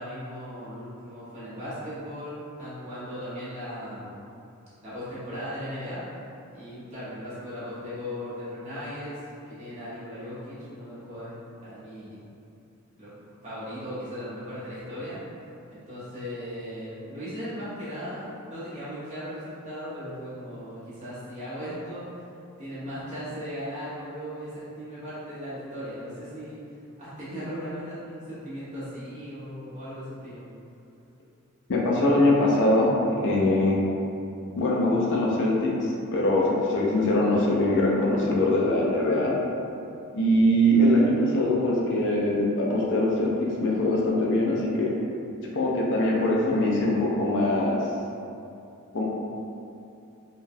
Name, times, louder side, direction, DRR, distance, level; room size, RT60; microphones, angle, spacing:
voice 1, 0.0-4.1 4.8-6.0 6.5-9.1 9.5-11.3 11.6-12.2 13.0-13.1 13.4-15.2 15.7-22.3 22.6-26.6 27.0-30.5, equal, 35° right, -12 dB, 1.1 m, -37 dB
voice 2, 31.7-32.9 33.2-33.8 34.6-39.3 40.1-43.3 43.6-44.9 45.4-47.8 48.9-49.0, left 1 dB, 55° left, -3 dB, 0.5 m, -22 dB
3.8 x 2.2 x 2.6 m, 2.7 s
head